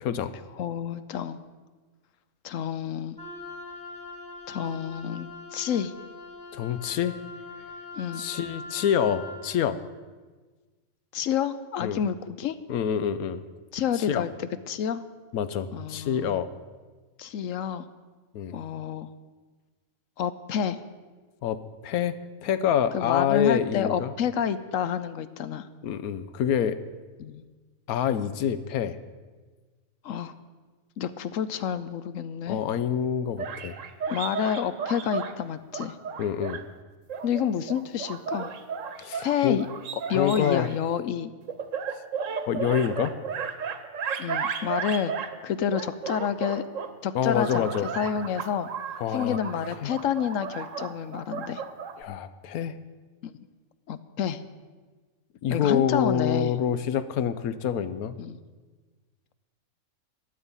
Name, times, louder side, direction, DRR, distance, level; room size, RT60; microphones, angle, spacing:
voice 1, 0.0-0.4 6.5-7.2 8.2-9.8 11.8-12.0 12.7-13.4 14.0-14.2 15.3-16.5 18.3-18.5 21.4-22.2 22.4-24.1 25.8-26.8 27.9-29.0 32.5-33.8 36.2-36.6 39.0-39.6 40.1-40.7 42.5-43.1 47.1-47.9 49.0-49.4 49.8-49.9 52.0-52.8 55.4-58.1, left 8 dB, 90° left, 13 dB, 1.2 m, -26 dB
voice 2, 0.6-1.4 2.4-3.2 4.5-5.9 7.9-8.2 11.1-12.6 13.7-15.0 15.7-16.4 17.2-17.9 18.5-19.1 20.2-20.8 22.9-25.7 27.2-27.4 30.0-30.3 31.0-32.6 34.1-36.0 37.2-38.5 39.2-39.7 39.9-41.3 44.2-46.6 47.0-48.7 49.1-51.6 53.2-53.4 53.9-54.4 55.5-56.5 58.2-58.4, left 8 dB, 70° left, 13 dB, 1.0 m, -29 dB
Wind instrument woodwind instrument, 3.2-9.4, left 3 dB, 5° left, 2.3 m, -42 dB
sound 1, 33.4-35.3 35.7-36.6 37.1-40.7 41.5-45.4 45.7-46.9 47.3-52.0, right 6 dB, 65° right, 1.2 m, -34 dB
15.5 x 10.5 x 5.5 m, 1.4 s
omnidirectional pair, 1.5 m